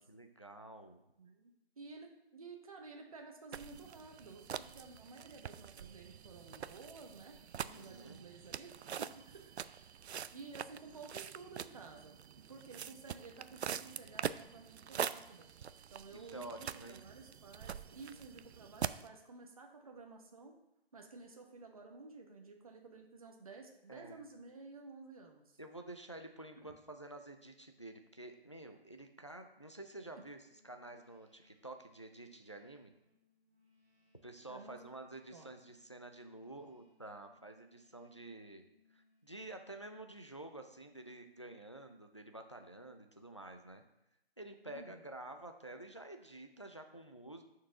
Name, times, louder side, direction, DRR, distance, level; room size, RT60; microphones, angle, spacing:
voice 1, 0.0-1.0 7.7-8.2 16.1-17.0 23.9-24.2 25.6-32.9 34.2-38.6 38.9-43.8 44.4-47.4, right 2 dB, 30° left, 6 dB, 0.4 m, -50 dB
voice 2, 1.2-8.7 9.0-9.9 10.3-12.2 12.5-15.5 15.9-20.5 20.9-25.6 26.6-26.7 34.5-34.8 35.3-35.5 44.7-45.0, right 4 dB, 35° right, 2 dB, 0.9 m, -53 dB
sound 1, 3.5-19.1, right 8 dB, 90° right, 0.5 m, -44 dB
sound 2, 30.3-40.3, left 4 dB, 10° right, 2.8 m, -74 dB
11.5 x 4.6 x 3.6 m, 0.88 s
hypercardioid pair, 175°, 32 cm